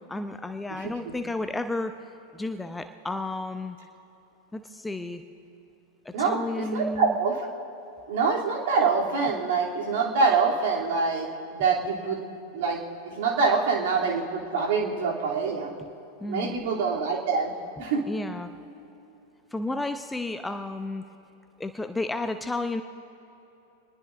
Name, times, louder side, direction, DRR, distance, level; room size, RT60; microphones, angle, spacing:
voice 1, 0.1-1.9 2.3-3.8 4.5-5.2 6.0-7.2 15.8-15.9 16.2-16.6 18.1-18.5 19.5-21.1 21.6-22.8, left 2 dB, 10° left, 9 dB, 0.6 m, -32 dB
voice 2, 0.8-1.1 6.1-7.4 8.1-12.2 12.5-12.8 13.0-15.7 16.3-17.5 17.8-18.0, right 4 dB, 50° right, -2 dB, 2.7 m, -25 dB
27.0 x 20.0 x 2.5 m, 3.0 s
figure-of-eight pair, 90°, 0 cm